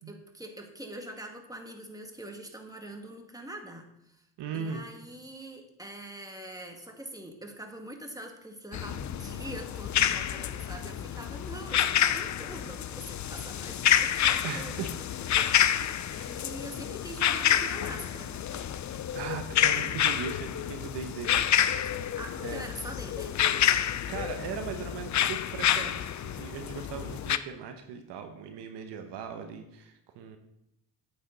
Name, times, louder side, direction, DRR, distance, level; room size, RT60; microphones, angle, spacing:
voice 1, 0.1-4.2 4.5-15.9 16.3-18.4 22.0-23.4, right 1 dB, 10° right, 2 dB, 2.1 m, -44 dB
voice 2, 4.4-4.8 14.4-14.9 15.9-16.4 19.1-21.6 22.0-22.7 24.1-30.4, right 6 dB, 75° right, 6 dB, 1.1 m, -39 dB
sound 1, 8.7-27.4, left 10 dB, 45° left, 0.6 m, -28 dB
9.1 x 8.5 x 4.0 m, 0.82 s
hypercardioid pair, 50°, 42 cm